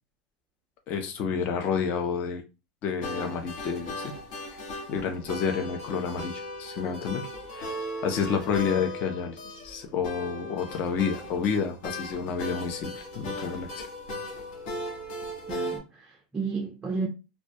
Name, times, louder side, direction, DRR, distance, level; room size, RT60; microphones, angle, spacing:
voice 1, 0.9-2.4 2.8-4.1 4.5-4.6 4.9-7.3 7.5-7.7 8.0-13.9, left 6 dB, 40° left, 0.5 m, -30 dB
sound 1, 3.0-15.8, left 1 dB, 70° left, 0.9 m, -37 dB
voice 2, 15.5-17.1, right 4 dB, 15° right, 0.4 m, -32 dB
2.2 x 2.1 x 2.6 m
supercardioid pair, 130°, 4 cm